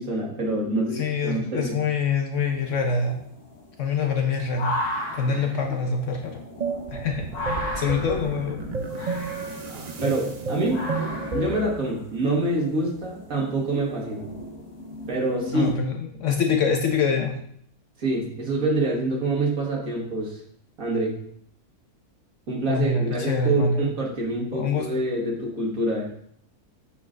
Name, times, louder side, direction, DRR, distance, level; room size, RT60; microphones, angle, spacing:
voice 1, 0.0-1.8 5.3-5.6 9.7-10.8 11.3-14.2 15.1-15.7 18.0-20.4 20.8-21.1 22.5-26.1, right 2 dB, 65° right, -2 dB, 2.0 m, -26 dB
voice 2, 0.9-3.2 3.8-4.7 5.1-6.4 6.9-8.6 15.5-17.4 22.7-23.8 24.5-24.9, left 5 dB, 60° left, 3 dB, 0.9 m, -25 dB
sound 1, 2.3-15.7, left 1 dB, 80° left, 2.2 m, -36 dB
sound 2, 6.6-11.8, right 3 dB, 85° right, 0.3 m, -31 dB
7.8 x 5.9 x 2.5 m, 0.67 s
omnidirectional pair, 1.6 m